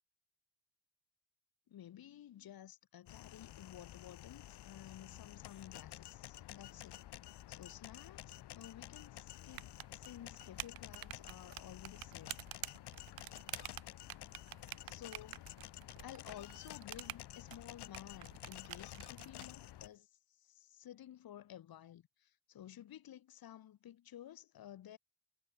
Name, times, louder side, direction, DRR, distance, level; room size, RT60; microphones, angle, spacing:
voice 1, 1.7-7.0 7.5-12.4 14.8-15.5 16.0-20.1 20.4-25.0, left 11 dB, 60° left, 7.4 m, -54 dB
sound 1, 3.1-19.9, left 13 dB, 75° left, 4.8 m, -51 dB
sound 2, 9.5-19.5, right 15 dB, 60° right, 0.8 m, -49 dB
cardioid pair, 170°, 40 cm